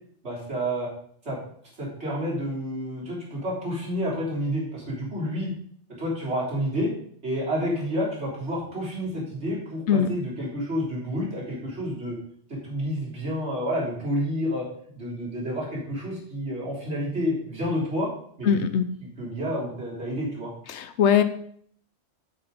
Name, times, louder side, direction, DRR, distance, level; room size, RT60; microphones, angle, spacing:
voice 1, 0.2-0.9 1.2-1.4 1.8-5.5 6.0-6.9 7.2-12.2 12.5-14.7 15.0-18.1 18.4-18.5 19.0-20.5, equal, 70° right, -5 dB, 3.8 m, -29 dB
voice 2, 18.4-18.9 20.7-21.2, left 8 dB, 75° left, 10 dB, 1.0 m, -21 dB
8.0 x 6.9 x 5.1 m, 0.62 s
omnidirectional pair, 1.2 m